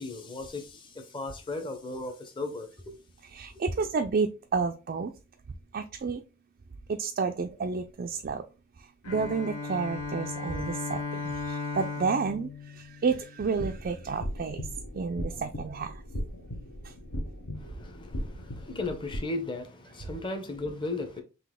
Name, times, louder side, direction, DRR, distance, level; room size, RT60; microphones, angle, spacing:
voice 1, 0.0-2.9 17.6-21.2, left 2 dB, 20° left, 0.7 m, -36 dB
voice 2, 3.3-5.1 5.7-6.2 6.9-8.4 9.1-14.6 14.9-15.9, right 5 dB, 40° right, 0.3 m, -30 dB
Bowed string instrument, 9.0-13.8, left 4 dB, 85° left, 1.2 m, -36 dB
sound 1, 13.5-19.2, equal, 65° left, 0.9 m, -38 dB
3.9 x 2.9 x 3.6 m
head